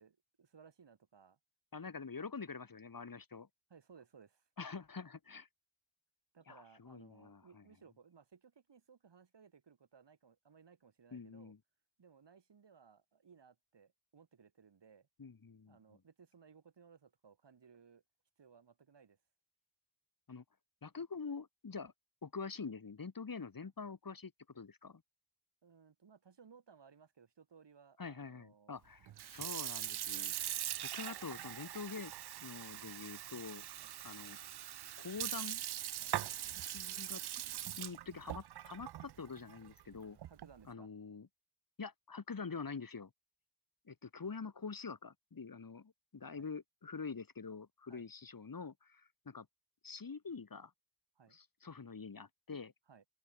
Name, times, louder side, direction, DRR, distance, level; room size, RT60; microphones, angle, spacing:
voice 1, 0.0-1.4 2.4-2.5 3.7-4.5 6.3-11.5 12.0-15.1 15.7-18.0 18.4-19.2 25.6-28.7 33.8-34.0 36.0-36.4 40.2-40.9 46.3-46.5 47.9-48.1 51.2-51.4 52.9-53.1, right 6 dB, 85° right, 5.4 m, -62 dB
voice 2, 1.7-3.5 4.6-5.5 6.5-7.6 11.1-11.6 15.2-16.0 20.3-20.4 20.8-21.9 22.2-25.0 28.0-30.3 30.8-32.1 32.4-33.7 34.0-34.4 35.0-35.6 36.7-37.2 37.8-40.2 40.7-41.3 41.8-43.1 43.9-49.5 49.8-50.7 51.3-52.7, left 5 dB, 55° left, 4.0 m, -46 dB
Sink (filling or washing) / Fill (with liquid), 29.1-40.6, right 12 dB, 70° right, 0.5 m, -42 dB
open air
wide cardioid pair, 125°, 41 cm